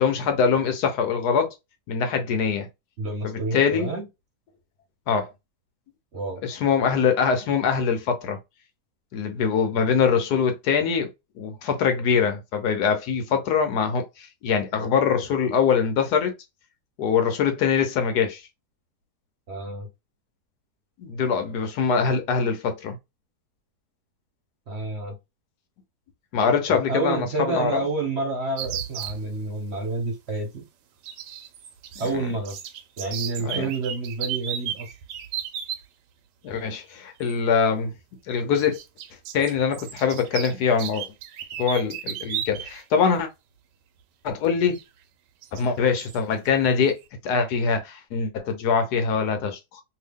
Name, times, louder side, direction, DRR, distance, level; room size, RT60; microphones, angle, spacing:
voice 1, 0.0-1.5 1.9-2.7 3.2-3.9 5.1-5.3 6.4-8.4 9.1-11.1 11.4-16.3 17.0-18.4 21.0-23.0 26.3-27.8 32.0-32.3 33.4-33.7 36.4-37.9 38.3-38.8 39.3-41.1 41.6-43.3 44.2-44.8 45.5-47.0 47.2-49.8, left 6 dB, 75° left, 1.2 m, -23 dB
voice 2, 3.0-4.1 6.1-6.4 19.5-19.9 24.7-25.2 26.9-30.6 32.0-32.6 33.0-34.9, right 3 dB, 45° right, 1.1 m, -29 dB
sound 1, 28.6-29.2 31.0-32.1 32.4-35.8 37.2-37.3 38.5-42.8 43.1-43.2 44.7-44.8 45.4-45.6 46.0-46.2, right 10 dB, 90° right, 1.2 m, -34 dB
2.8 x 2.7 x 3.4 m
omnidirectional pair, 1.8 m